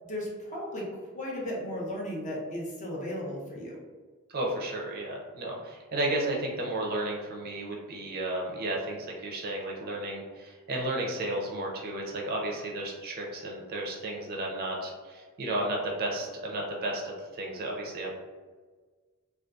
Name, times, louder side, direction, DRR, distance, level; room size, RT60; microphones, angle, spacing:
voice 1, 0.0-3.8, left 1 dB, 35° left, -4 dB, 0.6 m, -35 dB
voice 2, 4.3-18.1, right 1 dB, 45° right, -1 dB, 0.4 m, -33 dB
2.6 x 2.3 x 2.3 m, 1.4 s
head